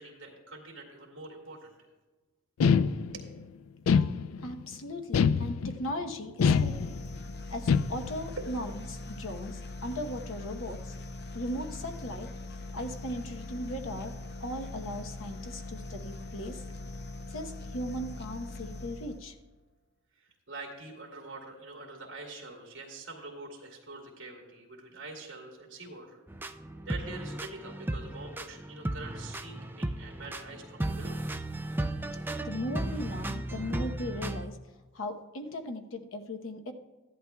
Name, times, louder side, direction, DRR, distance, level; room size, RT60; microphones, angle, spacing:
voice 1, 0.0-1.7 3.1-3.3 8.4-8.5 20.2-26.2 26.9-31.2, right 3 dB, 65° right, 1 dB, 2.3 m, -45 dB
sound 1, 2.6-3.4 3.9-4.6 5.1-5.9 6.4-7.2 7.7-8.3, left 6 dB, 90° left, 0.4 m, -25 dB
voice 2, 4.4-6.9 7.5-10.9 11.3-12.3 12.7-16.6 17.3-19.3 32.4-34.6 34.9-36.7, left 1 dB, 70° left, 5 dB, 1.0 m, -38 dB
sound 2, 6.4-19.4, left 2 dB, 50° left, 0.7 m, -42 dB
sound 3, 26.3-34.5, right 1 dB, 10° right, 0.3 m, -35 dB
14.0 x 11.0 x 2.3 m, 1.2 s
head